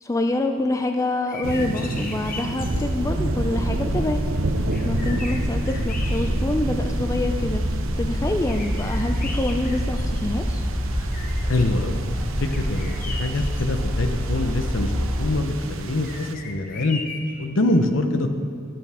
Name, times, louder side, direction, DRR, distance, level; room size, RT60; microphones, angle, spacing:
voice 1, 0.0-4.2 4.8-7.7 8.0-10.7, left 2 dB, 15° left, 6 dB, 0.3 m, -26 dB
sound 1, 1.1-2.9 4.3-4.4 4.7-6.6 7.2-7.3 8.5-10.5 10.9-11.8 12.5-13.6 16.0-17.4, left 3 dB, 40° left, 0.9 m, -38 dB
sound 2, 1.4-16.4, right 2 dB, 90° right, 0.7 m, -31 dB
sound 3, 2.6-15.3, equal, 5° right, 2.4 m, -27 dB
voice 2, 11.5-12.0 12.4-17.0 17.4-18.3, left 2 dB, 75° left, 7 dB, 0.8 m, -24 dB
19.0 x 6.9 x 3.5 m, 2.1 s
head